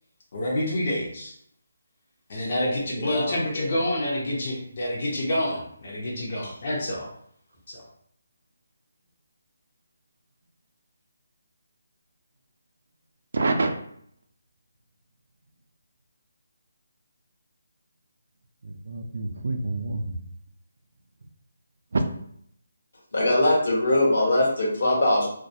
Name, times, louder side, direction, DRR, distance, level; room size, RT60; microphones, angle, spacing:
voice 1, 0.3-1.3 2.3-7.1 7.7-7.8, left 1 dB, 45° left, -3 dB, 0.7 m, -28 dB
voice 2, 2.9-3.7 23.1-25.3, left 1 dB, 65° left, -4 dB, 1.1 m, -22 dB
voice 3, 13.3-13.7 18.6-20.2 21.9-22.0, right 2 dB, 65° right, 5 dB, 0.3 m, -27 dB
2.2 x 2.1 x 2.7 m, 0.67 s
hypercardioid pair, 165°, 0 cm